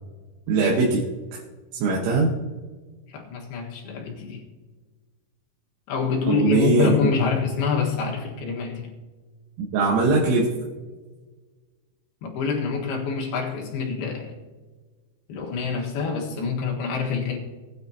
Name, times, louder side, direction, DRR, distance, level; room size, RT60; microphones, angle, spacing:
voice 1, 0.5-1.0 1.3-1.4 1.8-2.3 6.3-7.0 9.6-10.5, right 3 dB, 90° right, -3 dB, 3.8 m, -21 dB
voice 2, 3.1-4.4 5.9-8.9 12.2-14.3 15.3-17.4, left 5 dB, 65° left, 0 dB, 3.2 m, -26 dB
19.5 x 9.8 x 2.8 m, 1.4 s
omnidirectional pair, 5.4 m